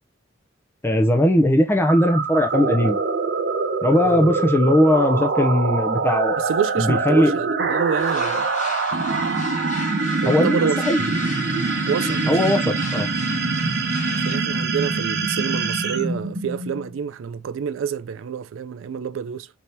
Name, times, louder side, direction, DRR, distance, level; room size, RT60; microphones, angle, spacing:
voice 1, 0.8-3.0 3.8-6.4 6.8-7.3 10.3-10.6 10.8-11.0 12.3-13.1, left 1 dB, 10° left, 0.5 m, -19 dB
sound 1, 1.9-17.0, right 4 dB, 60° right, 0.8 m, -24 dB
voice 2, 6.4-8.5 10.2-10.8 11.9-12.7 14.1-19.5, right 7 dB, 80° right, 0.4 m, -28 dB
sound 2, 8.0-14.4, left 4 dB, 40° left, 0.9 m, -36 dB
4.4 x 3.5 x 2.6 m
head